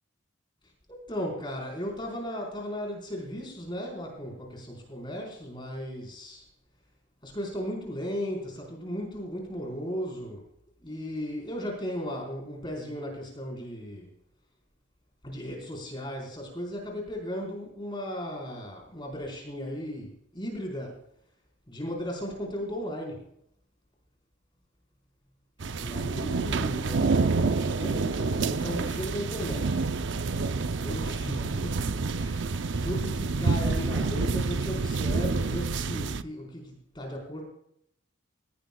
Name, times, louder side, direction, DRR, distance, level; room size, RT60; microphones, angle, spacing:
voice 1, 0.6-6.5 7.2-10.4 10.8-14.1 15.2-21.0 21.7-23.3 25.8-29.8 30.8-31.9 32.1-37.4, equal, 25° left, -1 dB, 4.5 m, -36 dB
sound 1, 25.6-36.2, right 4 dB, 65° right, 0.6 m, -28 dB
18.5 x 17.5 x 2.3 m, 0.72 s
head